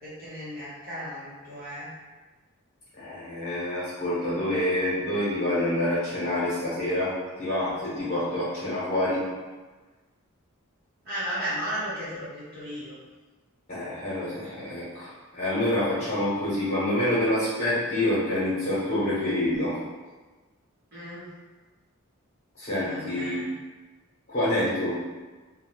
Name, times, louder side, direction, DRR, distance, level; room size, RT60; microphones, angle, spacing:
voice 1, 0.0-2.0 11.0-13.0 20.9-21.3 22.8-23.5, equal, 45° right, -11 dB, 0.8 m, -35 dB
voice 2, 3.0-9.2 13.7-19.8 22.5-23.4 24.3-24.9, left 1 dB, 45° left, -11 dB, 0.9 m, -27 dB
2.7 x 2.1 x 2.9 m, 1.3 s
head